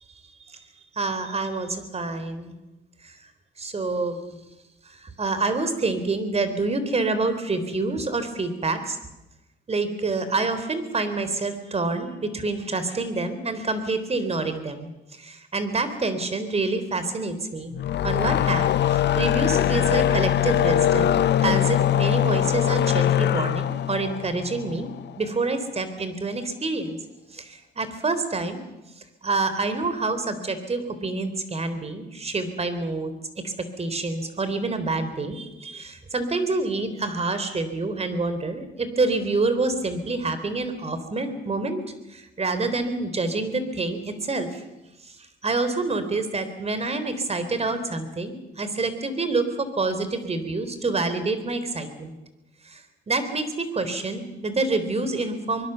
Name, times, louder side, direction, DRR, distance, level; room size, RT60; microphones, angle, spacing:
voice 1, 1.0-2.5 3.6-4.2 5.2-9.0 9.7-14.9 15.2-17.8 18.0-24.9 25.2-27.0 27.3-28.6 29.2-33.1 33.4-41.8 42.1-44.5 45.4-52.2 52.7-52.8 53.1-55.7, right 3 dB, 30° right, 10 dB, 3.7 m, -27 dB
sound 1, 17.7-25.1, left 11 dB, 60° left, 0.8 m, -22 dB
24.5 x 21.5 x 7.0 m, 0.99 s
cardioid pair, 90°, 20 cm